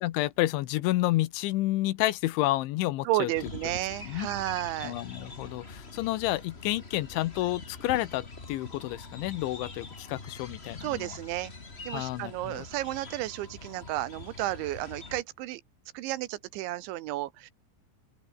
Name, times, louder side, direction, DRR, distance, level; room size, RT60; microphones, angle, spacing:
voice 1, 0.0-3.3 4.1-4.3 4.8-11.1 11.9-12.6, left 17 dB, 85° left, 3.4 m, -30 dB
voice 2, 3.0-4.9 10.8-11.5 11.8-15.6 15.9-17.5, right 16 dB, 80° right, 3.4 m, -32 dB
sound 1, 3.3-15.2, left 3 dB, 25° left, 1.3 m, -44 dB
open air
omnidirectional pair, 5.4 m